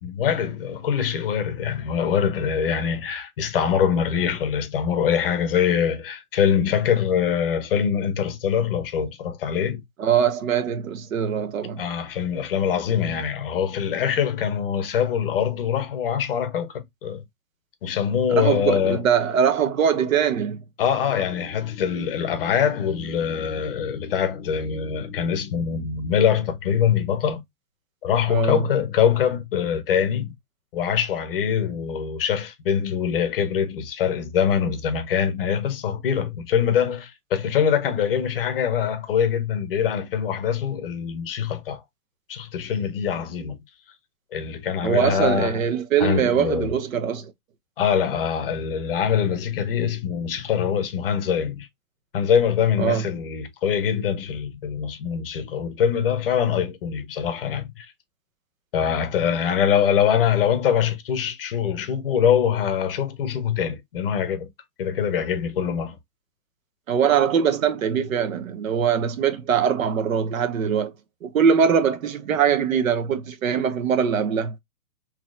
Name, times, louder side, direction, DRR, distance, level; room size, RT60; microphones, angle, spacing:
voice 1, 0.0-9.8 11.8-17.2 17.8-19.1 20.8-27.4 28.0-30.3 30.7-41.8 42.3-43.6 44.3-45.6 46.0-46.7 47.8-51.7 52.1-57.9 58.7-64.5 64.8-66.0, left 8 dB, 35° left, 0.7 m, -23 dB
voice 2, 10.0-11.8 18.3-20.6 28.3-28.7 44.8-47.3 52.8-53.0 66.9-70.9 71.2-74.5, right 7 dB, 60° right, 0.8 m, -22 dB
3.9 x 2.9 x 2.4 m
hypercardioid pair, 160°, 47 cm